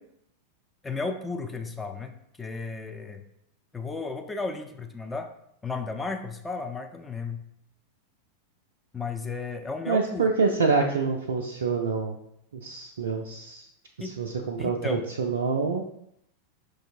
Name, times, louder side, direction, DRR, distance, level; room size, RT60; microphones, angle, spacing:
voice 1, 0.8-2.1 2.4-3.2 3.7-5.3 5.6-7.4 8.9-10.3 14.0-14.2 14.6-15.1, left 4 dB, 10° left, 5 dB, 0.4 m, -34 dB
voice 2, 9.9-12.2 12.5-13.7 14.0-15.8, right 4 dB, 65° right, 1 dB, 0.3 m, -26 dB
5.6 x 2.6 x 2.5 m, 0.74 s
figure-of-eight pair, 90°, 0 cm